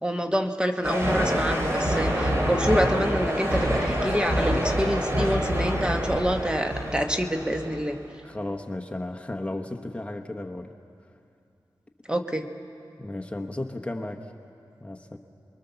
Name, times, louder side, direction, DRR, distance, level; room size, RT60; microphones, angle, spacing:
voice 1, 0.0-8.0 12.1-12.4, equal, 10° right, 4 dB, 1.3 m, -27 dB
sound 1, 0.8-7.9, equal, 30° right, 4.3 m, -26 dB
voice 2, 8.2-10.7 13.0-14.2 14.8-15.2, left 1 dB, 15° left, 2 dB, 1.2 m, -34 dB
28.0 x 22.5 x 7.0 m, 2.6 s
wide cardioid pair, 80°, 8 cm